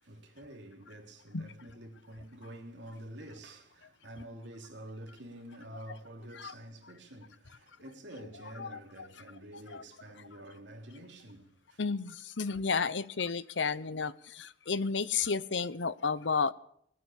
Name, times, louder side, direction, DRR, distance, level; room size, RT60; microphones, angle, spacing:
voice 1, 0.0-11.8 12.5-12.6, right 1 dB, 70° right, 3.4 m, -48 dB
voice 2, 11.8-16.5, left 5 dB, 80° left, 0.9 m, -32 dB
20.0 x 9.5 x 7.3 m
head